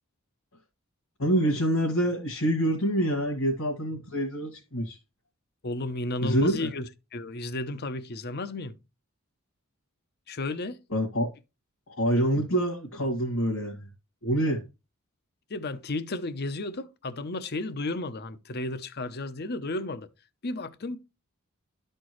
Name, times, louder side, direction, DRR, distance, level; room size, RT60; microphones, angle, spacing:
voice 1, 1.2-5.0 6.2-6.7 10.9-11.3 11.9-13.9 14.2-14.6, right 1 dB, 70° left, 2.1 m, -26 dB
voice 2, 5.6-6.9 7.1-8.7 10.3-10.8 15.5-20.1 20.4-21.0, left 2 dB, 50° left, 0.7 m, -33 dB
12.5 x 4.4 x 3.1 m
head